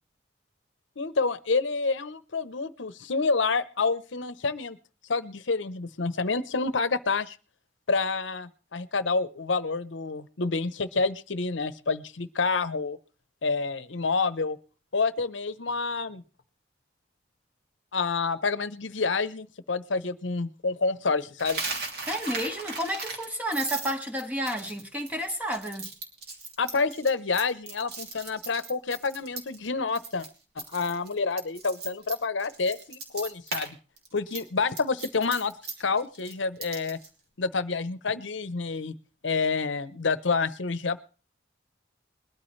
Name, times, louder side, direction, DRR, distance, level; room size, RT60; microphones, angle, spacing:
voice 1, 1.0-4.8 5.1-7.4 7.9-13.0 13.4-14.6 14.9-16.2 17.9-21.6 26.6-30.3 30.6-33.8 34.1-35.5 35.8-37.0 37.4-38.9 39.2-41.0, left 4 dB, 80° left, 0.9 m, -28 dB
Coin (dropping), 21.4-29.7 29.9-30.3 30.6-33.7 34.0-37.1, right 3 dB, 55° right, 3.0 m, -37 dB
voice 2, 22.1-25.9, equal, 10° right, 1.7 m, -31 dB
21.5 x 13.0 x 3.2 m
head